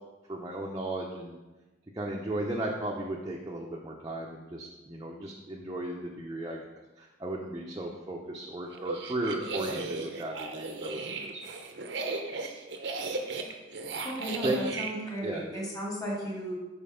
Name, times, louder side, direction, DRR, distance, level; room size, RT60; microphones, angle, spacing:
voice 1, 0.3-1.4 1.9-6.6 7.0-11.0 11.3-11.4 14.4-14.6 15.2-15.4, right 1 dB, 20° right, -2 dB, 0.6 m, -35 dB
sound 1, 8.7-14.9, right 3 dB, 75° right, 0.7 m, -36 dB
voice 2, 14.0-16.6, right 1 dB, 20° left, -5 dB, 2.0 m, -35 dB
5.3 x 4.5 x 5.6 m, 1.1 s
head